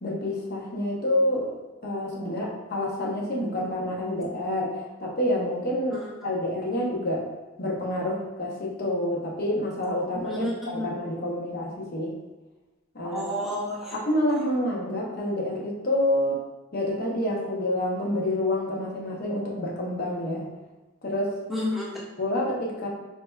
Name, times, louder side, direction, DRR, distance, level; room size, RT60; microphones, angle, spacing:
voice 1, 0.0-7.3 7.6-10.4 10.7-12.1 12.9-13.2 13.9-16.4 16.7-20.5 21.0-21.4 22.2-22.9, left 1 dB, 50° left, -3 dB, 0.8 m, -28 dB
voice 2, 5.9-6.3 10.2-11.0 13.0-13.9 21.5-22.0, left 1 dB, ahead, -6 dB, 0.4 m, -31 dB
4.3 x 3.3 x 2.2 m, 1.1 s
head